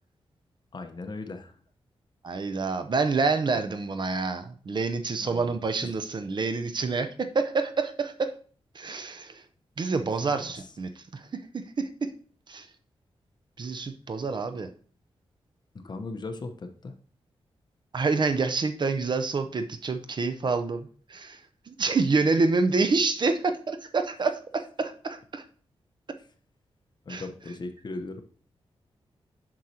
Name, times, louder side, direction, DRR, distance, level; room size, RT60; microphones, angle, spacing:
voice 1, 0.7-1.5 5.2-5.6 5.8-5.9 10.2-10.7 15.7-16.9 27.1-28.2, left 3 dB, 45° left, 7 dB, 0.9 m, -38 dB
voice 2, 2.2-8.3 8.7-9.4 9.8-12.1 12.5-12.7 13.6-14.7 17.9-21.4 21.7-25.4 27.1-27.2, right 4 dB, 45° right, 9 dB, 0.6 m, -27 dB
7.5 x 6.3 x 2.8 m, 0.43 s
cardioid pair, 80°, 10 cm